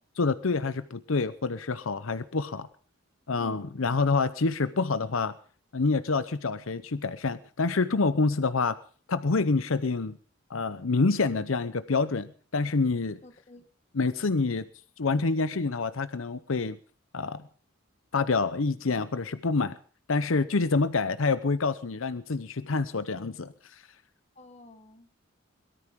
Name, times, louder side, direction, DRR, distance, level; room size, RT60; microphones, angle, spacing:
voice 1, 0.2-2.7 3.3-5.3 5.7-8.8 9.1-10.2 10.5-13.2 13.9-14.6 15.0-16.8 17.1-17.4 18.1-19.8 20.1-23.8, left 4 dB, 80° left, 13 dB, 0.8 m, -27 dB
voice 2, 3.3-3.8 13.2-13.6 24.4-25.2, left 1 dB, 35° left, 6 dB, 1.8 m, -49 dB
22.0 x 13.5 x 3.7 m, 0.39 s
head